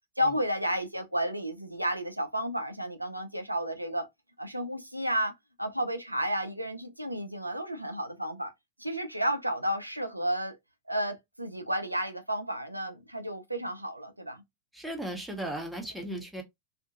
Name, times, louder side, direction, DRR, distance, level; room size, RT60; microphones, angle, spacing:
voice 1, 0.2-4.1 4.4-8.5 8.8-10.6 10.9-14.4 16.1-16.2, equal, 85° right, 0.4 m, -32 dB
voice 2, 14.7-16.4, right 1 dB, ahead, 0.7 m, -36 dB
2.7 x 2.4 x 2.3 m
figure-of-eight pair, 90°, 0 cm